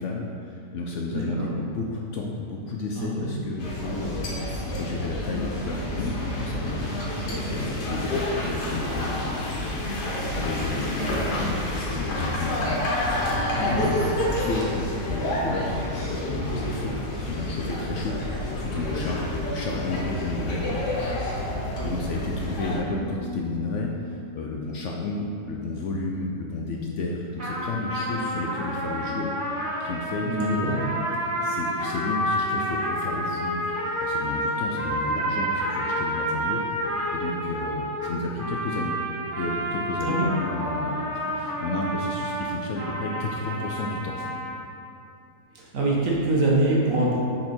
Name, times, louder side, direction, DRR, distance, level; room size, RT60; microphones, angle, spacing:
voice 1, 0.0-11.6 11.9-13.0 13.5-18.2 18.5-21.2 21.5-29.3 29.8-30.9 31.4-39.0 39.4-44.3, left 3 dB, 70° left, -1 dB, 0.7 m, -32 dB
voice 2, 1.1-1.5 3.0-3.3 13.5-13.9 30.2-30.8 40.1-40.2 45.5-47.2, right 2 dB, 60° right, -4 dB, 1.4 m, -24 dB
sound 1, 3.6-22.8, left 1 dB, 90° left, 1.7 m, -29 dB
sound 2, 22.9-26.3, left 1 dB, 75° right, 1.6 m, -40 dB
sound 3, 27.4-44.5, equal, 35° right, 1.5 m, -29 dB
6.5 x 4.3 x 4.2 m, 2.7 s
omnidirectional pair, 1.7 m